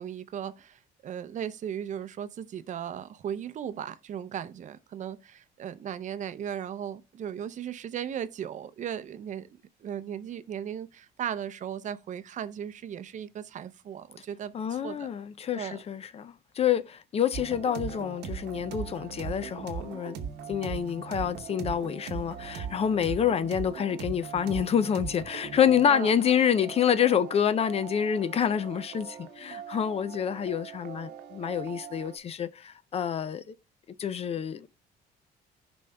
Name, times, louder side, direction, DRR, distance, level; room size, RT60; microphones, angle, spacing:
voice 1, 0.0-9.5 9.8-15.1 15.5-15.8 25.9-26.1, right 9 dB, 45° right, 0.5 m, -37 dB
voice 2, 14.5-20.2 20.5-33.5 34.0-34.7, left 8 dB, 35° left, 0.4 m, -27 dB
sound 1, 17.3-32.2, right 7 dB, 80° right, 0.9 m, -40 dB
15.5 x 5.2 x 2.2 m
cardioid pair, 110°, 17 cm